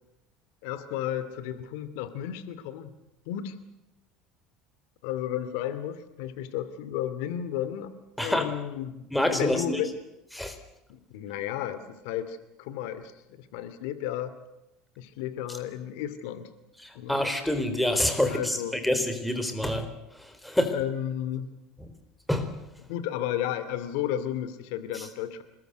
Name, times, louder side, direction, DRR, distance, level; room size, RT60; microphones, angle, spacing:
voice 1, 0.6-2.9 3.3-3.6 5.0-9.9 10.9-14.4 15.0-16.5 16.9-17.2 18.3-18.8 20.7-21.5 22.8-25.4, left 11 dB, 80° left, 13 dB, 2.5 m, -33 dB
voice 2, 8.2-8.6 9.1-9.8 10.3-10.6 16.8-18.6 18.8-19.9 20.2-20.8 22.3-22.5, left 1 dB, 5° left, 8 dB, 3.8 m, -27 dB
27.5 x 21.0 x 8.1 m, 0.90 s
supercardioid pair, 130°, 0 cm